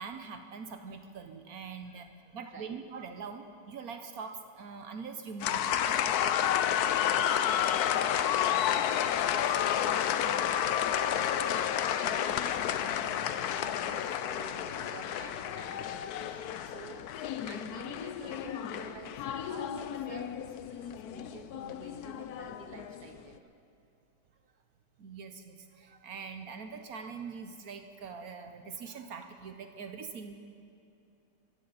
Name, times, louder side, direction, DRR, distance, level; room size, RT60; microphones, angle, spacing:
voice 1, 0.0-6.0 25.0-30.3, right 5 dB, 65° right, 7 dB, 1.2 m, -43 dB
sound 1, 5.4-23.1, left 10 dB, 70° left, 1.1 m, -31 dB
voice 2, 6.5-13.1 13.5-23.5, right 3 dB, 35° right, 5 dB, 1.0 m, -49 dB
23.0 x 14.5 x 4.1 m, 2.8 s
omnidirectional pair, 1.9 m